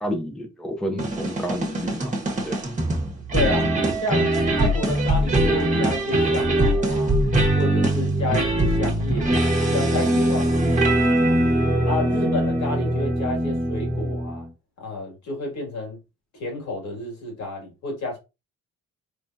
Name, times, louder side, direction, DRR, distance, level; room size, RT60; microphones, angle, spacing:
voice 1, 0.0-2.1 2.5-2.6, equal, ahead, 0.7 m, -30 dB
sound 1, 1.0-14.5, right 1 dB, 25° right, 1.2 m, -22 dB
voice 2, 3.3-3.7 4.0-7.2 7.6-9.3 9.6-11.0 11.8-14.5 14.8-16.0 16.3-18.2, left 2 dB, 70° left, 2.0 m, -30 dB
3.6 x 3.3 x 2.6 m
cardioid pair, 90°, 30 cm